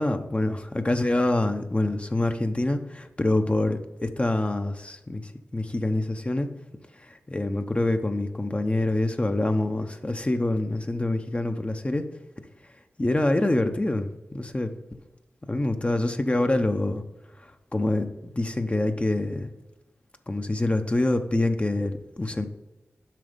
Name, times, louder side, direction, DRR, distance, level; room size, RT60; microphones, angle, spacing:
voice 1, 0.0-6.5 7.0-12.1 13.0-14.7 15.5-17.0 17.7-19.5 20.3-22.5, left 2 dB, 25° left, 7 dB, 0.8 m, -26 dB
7.6 x 5.3 x 5.2 m, 1.0 s
cardioid pair, 45°, 5 cm